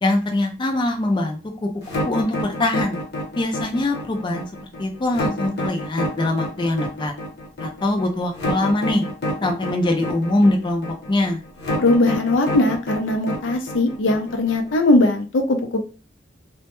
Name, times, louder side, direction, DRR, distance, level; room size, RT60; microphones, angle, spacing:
voice 1, 0.0-1.7 2.1-3.0 3.4-4.5 4.8-7.1 7.6-9.0 9.4-11.4, left 2 dB, 25° left, 2 dB, 0.4 m, -22 dB
sound 1, 1.8-14.7, left 1 dB, 60° left, 0.9 m, -28 dB
voice 2, 11.8-15.8, left 2 dB, 75° left, 5 dB, 0.5 m, -19 dB
2.1 x 2.0 x 2.9 m, 0.34 s
head